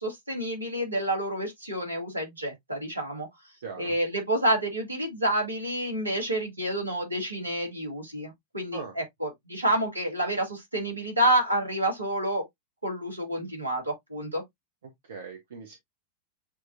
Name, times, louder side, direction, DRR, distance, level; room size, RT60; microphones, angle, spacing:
voice 1, 0.0-3.3 3.8-12.4 12.8-14.4, right 1 dB, 80° right, 1.8 m, -29 dB
voice 2, 3.6-3.9 8.7-8.9 15.0-15.8, right 5 dB, 60° right, 0.9 m, -40 dB
6.9 x 3.1 x 2.5 m
figure-of-eight pair, 90°, 0 cm